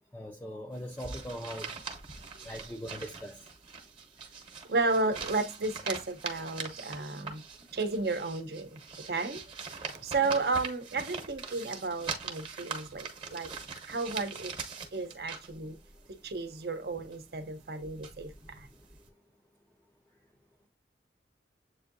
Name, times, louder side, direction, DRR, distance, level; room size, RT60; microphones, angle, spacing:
voice 1, 0.1-1.7 2.5-3.3, equal, 10° left, 0.4 m, -40 dB
sound 1, 0.7-16.7 16.9-19.1, right 5 dB, 30° right, 0.9 m, -43 dB
voice 2, 4.7-7.5 7.7-9.4 9.9-13.5 13.9-14.5 14.9-15.8 16.2-18.7, right 3 dB, 60° right, 0.7 m, -33 dB
7.7 x 2.7 x 2.6 m
head